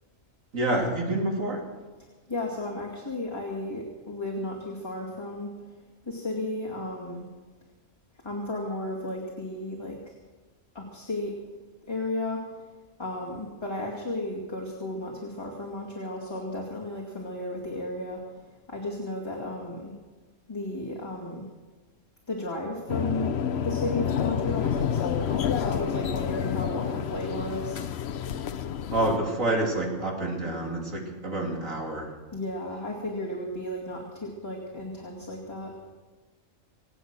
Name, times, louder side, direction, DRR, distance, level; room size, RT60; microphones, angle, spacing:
voice 1, 0.5-1.6 28.9-32.1, right 1 dB, 75° right, 0 dB, 3.3 m, -28 dB
voice 2, 2.3-5.5 6.1-7.3 8.2-10.1 10.7-11.3 11.9-12.4 13.0-19.9 20.5-21.5 22.3-23.3 23.6-27.8 32.3-35.7, left 1 dB, 20° left, -3 dB, 2.4 m, -34 dB
sound 1, 22.9-29.2, left 8 dB, 60° left, 0.9 m, -29 dB
26.0 x 8.9 x 6.3 m, 1.3 s
omnidirectional pair, 1.4 m